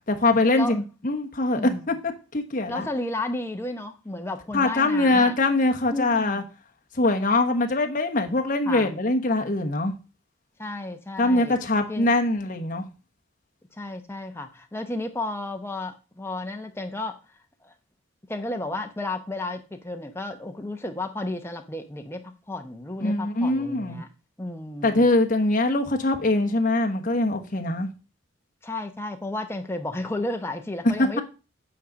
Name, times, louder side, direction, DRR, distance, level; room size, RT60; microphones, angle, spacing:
voice 1, 0.1-1.6 1.9-2.9 4.5-6.4 6.9-9.9 11.2-12.9 23.0-24.0 24.8-27.9 31.0-31.1, left 2 dB, 40° left, 1.1 m, -23 dB
voice 2, 1.5-2.0 2.7-5.4 5.9-6.4 8.7-9.0 10.6-11.6 11.9-12.1 13.7-17.2 17.6-17.7 18.3-24.1 24.4-25.1 28.6-31.2, left 2 dB, 10° left, 0.8 m, -33 dB
8.6 x 3.9 x 6.2 m
head